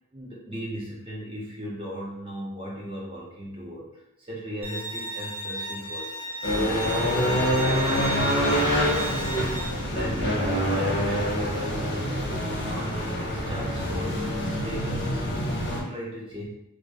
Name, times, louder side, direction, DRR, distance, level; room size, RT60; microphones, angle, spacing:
voice 1, 0.1-13.0 13.3-16.5, equal, 25° right, -4 dB, 0.6 m, -38 dB
Bowed string instrument, 4.6-9.7, equal, 65° right, 0.7 m, -34 dB
sound 1, 6.4-15.8, equal, 50° left, 0.5 m, -26 dB
2.4 x 2.1 x 2.7 m, 0.87 s
head